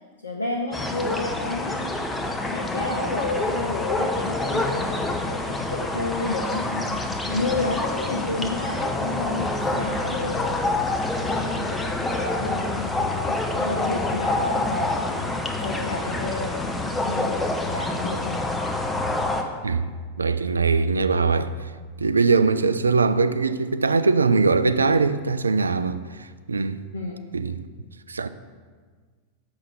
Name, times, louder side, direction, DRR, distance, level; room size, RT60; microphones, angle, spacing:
voice 1, 0.2-2.1 2.5-10.6 11.1-15.2 15.6-18.4 26.9-27.2, left 2 dB, 75° left, 0.8 m, -31 dB
sound 1, 0.7-19.4, left 2 dB, 10° left, 0.8 m, -27 dB
voice 2, 20.2-21.7 22.0-26.8 27.3-27.6 28.1-28.3, right 4 dB, 75° right, 0.4 m, -21 dB
6.8 x 5.7 x 5.7 m
figure-of-eight pair, 90°, 0 cm